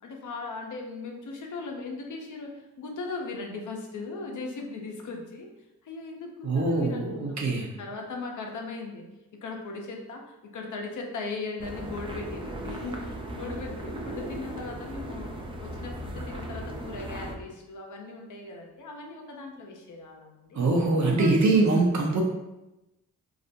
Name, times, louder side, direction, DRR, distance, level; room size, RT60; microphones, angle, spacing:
voice 1, 0.0-5.5 5.8-7.4 7.8-9.1 9.4-10.2 10.5-15.3 15.6-20.6 21.0-21.6, left 3 dB, 50° left, 1 dB, 0.6 m, -38 dB
voice 2, 6.4-7.7 20.5-22.2, right 3 dB, 45° right, 0 dB, 0.6 m, -23 dB
sound 1, 11.6-17.4, right 1 dB, 15° right, 0.3 m, -37 dB
2.4 x 2.0 x 2.7 m, 0.97 s
supercardioid pair, 50°, 40 cm